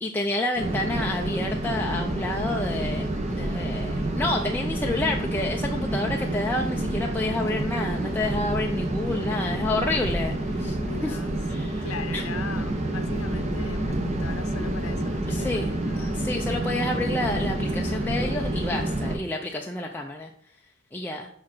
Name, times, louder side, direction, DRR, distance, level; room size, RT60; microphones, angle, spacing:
voice 1, 0.0-11.2 11.5-12.2 15.3-20.3 20.9-21.3, left 2 dB, 10° left, 0 dB, 0.4 m, -29 dB
sound 1, 0.6-19.2, right 1 dB, 30° right, 0.9 m, -28 dB
voice 2, 10.7-11.3 11.8-16.2, left 5 dB, 80° left, 10 dB, 0.8 m, -40 dB
5.8 x 4.7 x 6.0 m, 0.64 s
head